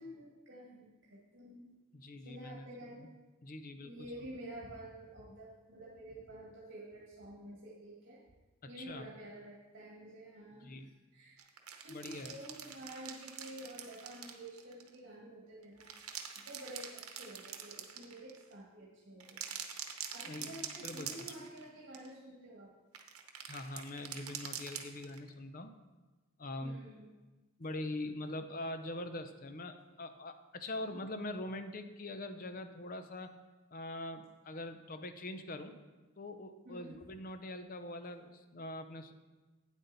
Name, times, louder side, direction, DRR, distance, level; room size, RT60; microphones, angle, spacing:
voice 1, 0.0-1.8 2.2-3.1 3.8-8.2 8.6-11.4 11.8-19.6 20.1-22.7 26.6-27.2 36.6-37.0, right 1 dB, 55° right, -4 dB, 1.8 m, -50 dB
voice 2, 1.9-2.6 3.0-3.1 3.4-3.9 8.8-9.1 10.6-10.9 11.9-12.3 20.3-20.5 20.8-21.1 23.5-25.7 26.4-26.8 27.6-33.4 33.7-35.8 36.2-39.1, left 1 dB, 40° left, 9 dB, 0.6 m, -43 dB
sound 1, 11.4-14.9 15.6-18.5 19.2-21.7 21.9-22.1 22.9-25.3, right 8 dB, 85° right, 0.9 m, -45 dB
9.0 x 7.8 x 4.1 m, 1.2 s
head